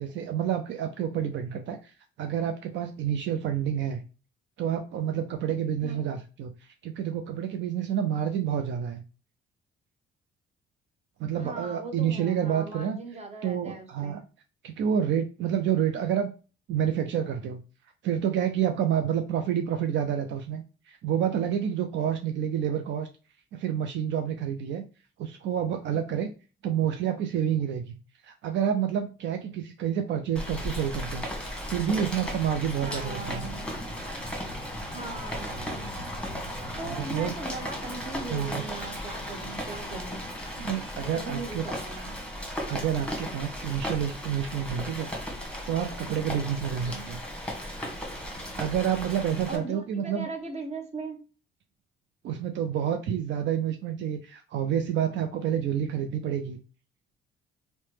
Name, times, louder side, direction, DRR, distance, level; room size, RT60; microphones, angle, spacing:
voice 1, 0.0-1.9 2.2-4.0 4.6-6.5 6.8-9.0 11.2-13.0 13.4-14.2 14.6-16.3 16.7-17.6 18.0-23.1 23.5-24.8 25.2-26.3 26.6-27.9 28.2-31.3 31.7-33.4 36.8-37.3 38.3-38.6 40.6-41.6 42.7-45.1 45.7-47.2 48.6-50.3 52.2-56.6, right 9 dB, 70° right, 0.4 m, -29 dB
voice 2, 5.8-6.1 11.4-14.2 32.8-33.7 34.9-35.9 36.8-40.2 41.0-42.2 46.8-47.1 49.5-51.2, right 3 dB, 35° right, 0.8 m, -39 dB
Rain, 30.4-49.6, equal, 5° left, 1.0 m, -36 dB
2.8 x 2.1 x 3.1 m
cardioid pair, 90°, 20 cm